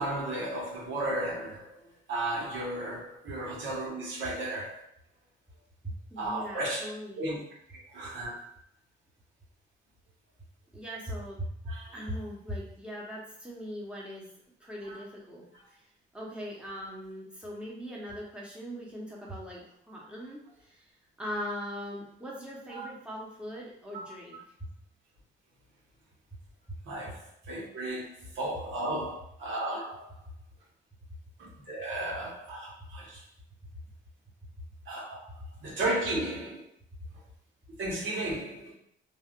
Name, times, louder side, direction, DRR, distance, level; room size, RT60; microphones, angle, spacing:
voice 1, 0.0-1.7 2.1-4.8 6.2-6.9 7.2-7.4 7.9-8.5 11.7-11.9 14.8-15.0 22.7-22.9 23.9-24.1 26.8-28.1 28.3-30.1 31.4-33.2 34.9-35.2 35.6-36.6 37.8-38.7, right 1 dB, 75° right, -4 dB, 1.2 m, -34 dB
voice 2, 5.8-7.3 10.7-14.3 14.6-15.8 16.1-20.9 21.2-24.7 26.7-26.8 33.7-33.8 35.4-35.5, equal, 5° right, -4 dB, 1.0 m, -40 dB
3.3 x 2.4 x 2.5 m, 0.71 s
cardioid pair, 90°, 20 cm